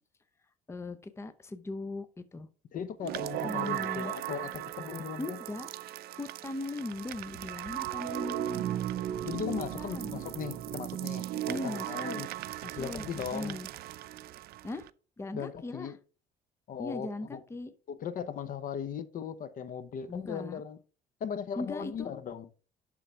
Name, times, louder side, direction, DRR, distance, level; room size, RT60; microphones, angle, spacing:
voice 1, 0.7-2.5 3.4-4.1 5.2-5.7 6.1-8.6 9.4-10.2 11.3-12.2 12.6-13.1 13.3-13.7 14.6-14.9 15.2-15.9 16.8-17.7 20.1-20.6 21.6-22.2, left 2 dB, 15° left, 0.7 m, -39 dB
voice 2, 2.7-5.4 9.2-12.3 12.8-13.6 15.3-16.0 16.7-17.4 17.9-20.8 21.2-22.5, left 7 dB, 55° left, 0.8 m, -38 dB
sound 1, 3.0-14.9, right 13 dB, 65° right, 0.5 m, -37 dB
11.0 x 3.8 x 4.5 m
cardioid pair, 110°, 17 cm